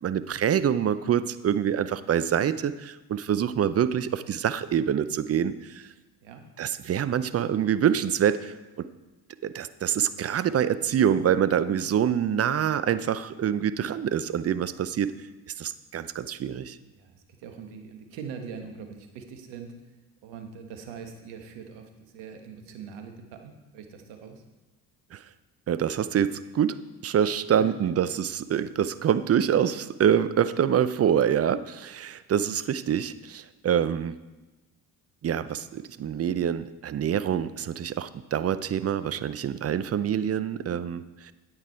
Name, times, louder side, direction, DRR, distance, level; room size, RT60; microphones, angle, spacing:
voice 1, 0.0-5.8 6.6-8.9 9.4-15.1 15.6-16.8 25.1-25.2 25.7-34.2 35.2-41.3, right 9 dB, 35° right, 14 dB, 0.6 m, -26 dB
voice 2, 16.9-19.9 20.2-24.4 27.5-27.7 39.3-39.5, right 6 dB, 70° right, 5 dB, 1.5 m, -42 dB
9.5 x 8.8 x 4.5 m, 1.1 s
hypercardioid pair, 55°, 44 cm